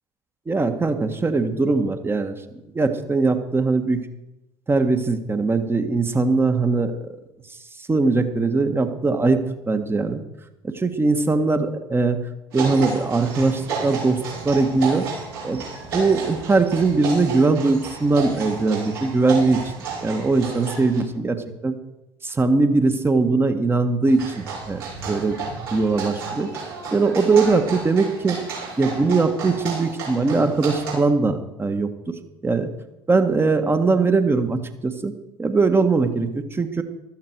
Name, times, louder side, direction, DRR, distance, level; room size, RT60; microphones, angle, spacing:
voice 1, 0.5-2.4 2.7-4.0 4.7-7.0 7.5-10.2 10.6-12.2 12.5-15.1 15.4-15.6 15.9-19.7 20.0-21.7 22.2-25.4 25.7-28.4 28.8-32.7 33.1-35.1 35.4-36.8, right 3 dB, 20° right, 8 dB, 1.6 m, -21 dB
sound 1, 12.5-21.0 24.1-30.9, right 4 dB, 65° right, 5.9 m, -32 dB
15.0 x 13.5 x 4.6 m, 0.97 s
figure-of-eight pair, 60°, 13 cm